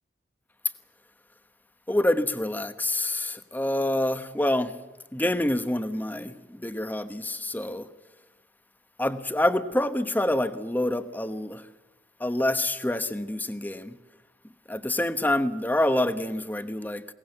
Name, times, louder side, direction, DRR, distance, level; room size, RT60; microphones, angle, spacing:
voice 1, 1.9-4.7 5.1-7.9 9.0-11.6 12.2-14.0 14.7-17.1, left 1 dB, 10° left, 1.0 m, -27 dB
21.5 x 18.5 x 7.8 m
head